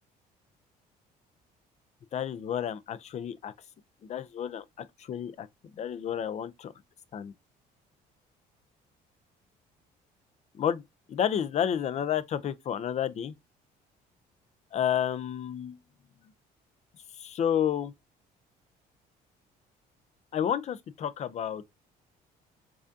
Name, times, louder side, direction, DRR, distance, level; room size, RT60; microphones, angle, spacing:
voice 1, 2.1-3.5 4.1-4.6 5.1-5.5 5.8-6.7 7.1-7.3 10.6-10.8 11.1-13.3 14.7-15.8 17.2-17.9 20.3-21.6, left 9 dB, 40° left, 0.4 m, -30 dB
4.8 x 2.5 x 2.6 m
cardioid pair, 110°, 17 cm